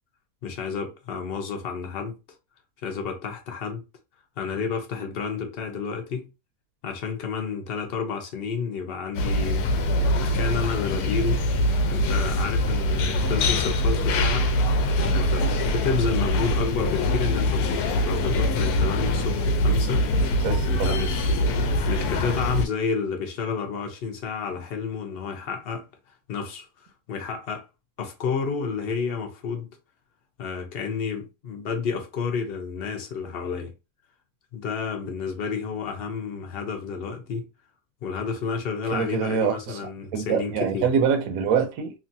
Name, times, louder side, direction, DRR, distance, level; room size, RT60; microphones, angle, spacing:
voice 1, 0.4-2.2 2.8-3.8 4.4-6.3 6.8-9.7 10.1-11.5 11.9-14.5 15.1-20.3 20.7-21.3 21.9-25.9 26.3-27.7 28.0-29.7 30.4-33.7 34.5-37.5 38.0-40.9, left 5 dB, 55° left, 0.7 m, -30 dB
sound 1, 9.1-22.6, left 1 dB, 75° left, 1.0 m, -23 dB
voice 2, 20.4-21.0 38.9-39.8 40.1-41.9, right 7 dB, 70° right, 1.0 m, -25 dB
3.0 x 2.4 x 2.6 m
omnidirectional pair, 1.7 m